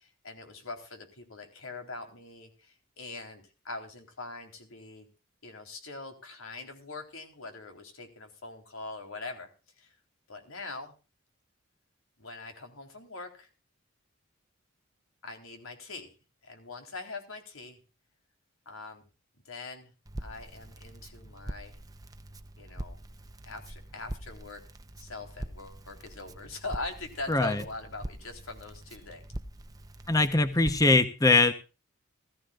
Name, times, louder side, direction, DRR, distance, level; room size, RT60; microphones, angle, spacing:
voice 1, 0.0-5.1 5.4-9.5 9.8-9.9 10.3-10.9 12.2-13.5 15.2-16.1 16.4-17.8 18.7-19.0 19.5-19.9 20.2-21.8 22.6-23.0 23.4-24.6 25.0-29.2, left 3 dB, 85° left, 5 dB, 3.9 m, -42 dB
Crackle, 20.1-31.0, right 1 dB, 15° right, 0.7 m, -43 dB
voice 2, 27.3-27.6 30.1-31.5, left 3 dB, 15° left, 10 dB, 0.9 m, -22 dB
20.0 x 14.5 x 2.5 m, 0.32 s
head